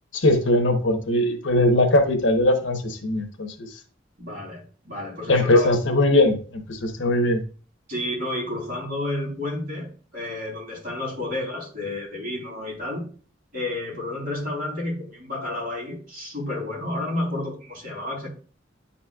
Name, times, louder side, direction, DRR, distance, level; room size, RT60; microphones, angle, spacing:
voice 1, 0.1-3.7 5.3-7.4, left 1 dB, 75° left, 5 dB, 1.0 m, -20 dB
voice 2, 4.2-5.7 7.9-9.9 10.1-13.0 13.5-18.3, left 1 dB, 50° right, -3 dB, 3.2 m, -31 dB
9.7 x 4.2 x 2.3 m, 0.39 s
head